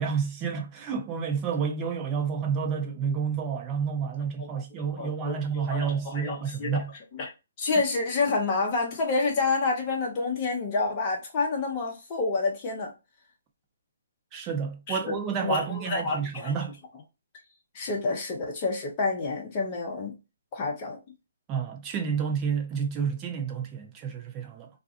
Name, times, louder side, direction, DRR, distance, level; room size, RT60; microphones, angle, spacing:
voice 1, 0.0-6.9 14.3-16.8 21.5-24.7, right 6 dB, 20° right, 0.5 m, -30 dB
voice 2, 5.0-6.8 7.1-7.3 7.6-12.9 14.9-15.1 15.4-16.5 17.7-20.2 20.5-21.0, left 3 dB, 30° left, 0.6 m, -28 dB
2.4 x 2.3 x 2.4 m
figure-of-eight pair, 135°, 0 cm